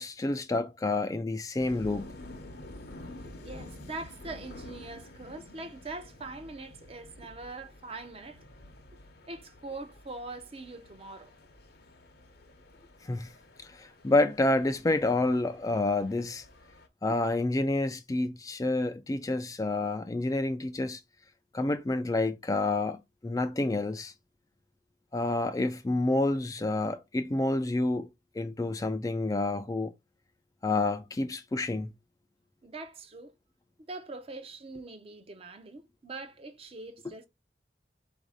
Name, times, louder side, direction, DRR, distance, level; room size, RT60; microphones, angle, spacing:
voice 1, 0.0-2.2 13.0-13.3 13.6-16.4 17.0-21.0 21.5-24.1 25.1-28.1 28.3-29.9 30.6-31.9, left 2 dB, 20° left, 0.3 m, -29 dB
sound 1, 1.6-16.9, left 1 dB, 60° left, 0.8 m, -50 dB
voice 2, 3.2-8.4 9.3-11.3 17.1-17.2 32.6-33.3 33.9-37.3, right 3 dB, 35° right, 0.6 m, -43 dB
3.9 x 2.6 x 4.8 m
head